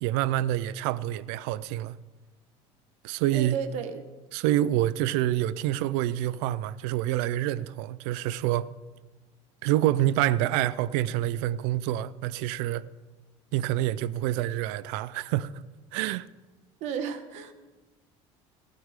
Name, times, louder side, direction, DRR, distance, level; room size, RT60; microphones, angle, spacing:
voice 1, 0.0-2.0 3.0-3.6 4.3-8.7 9.6-12.8 13.5-15.5 15.9-16.3, right 13 dB, 80° right, 0.6 m, -27 dB
voice 2, 3.3-4.1 5.4-5.5 16.8-17.5, right 7 dB, 55° right, 1.3 m, -33 dB
27.5 x 9.3 x 3.7 m
cardioid pair, 155°, 14 cm